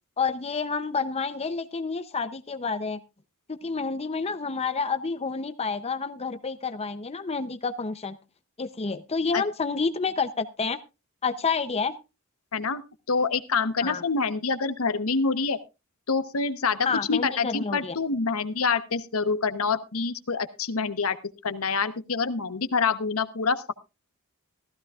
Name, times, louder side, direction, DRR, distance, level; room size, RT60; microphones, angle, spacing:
voice 1, 0.2-3.0 3.5-8.2 8.6-10.8 11.2-12.0 13.8-14.0 16.8-18.0, left 4 dB, 30° left, 10 dB, 0.7 m, -29 dB
voice 2, 12.5-12.8 13.1-15.6 16.1-21.2 21.4-23.7, left 4 dB, 80° left, 11 dB, 1.0 m, -26 dB
15.5 x 14.5 x 2.4 m, 0.27 s
head